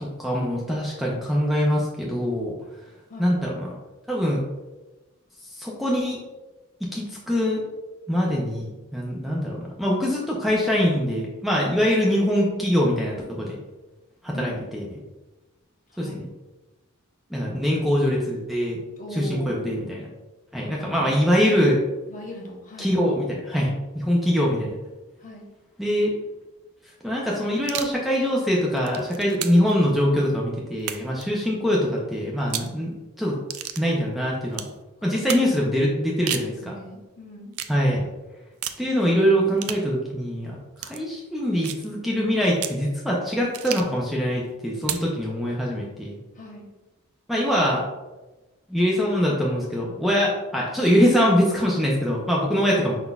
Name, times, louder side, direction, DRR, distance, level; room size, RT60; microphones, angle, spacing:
voice 1, 0.0-2.5 3.2-3.7 4.1-4.4 5.4-6.2 6.9-7.6 8.1-13.6 14.2-14.8 16.0-16.1 17.3-18.8 19.2-20.0 20.5-21.8 22.8-24.8 25.8-26.1 27.0-33.4 33.8-34.7 35.0-36.7 37.7-38.1 38.8-46.2 47.3-47.9 48.7-53.0, equal, ahead, -4 dB, 0.5 m, -23 dB
voice 2, 19.0-19.7 20.8-21.3 22.1-22.9 25.2-25.5 35.0-35.3 36.3-37.5 46.3-46.7 52.5-52.8, left 1 dB, 40° left, -2 dB, 1.0 m, -39 dB
sound 1, 27.6-28.0 28.6-29.7 30.8-31.2 32.4-32.7 33.5-33.8 34.5-34.7 35.3-35.5 36.1-36.5 37.5-37.8 38.6-38.8 39.6-39.9 40.8-41.0 41.6-41.9 42.6-42.8 43.5-44.0 44.8-45.1, right 10 dB, 90° right, 0.4 m, -32 dB
5.2 x 3.9 x 2.3 m, 1.1 s
head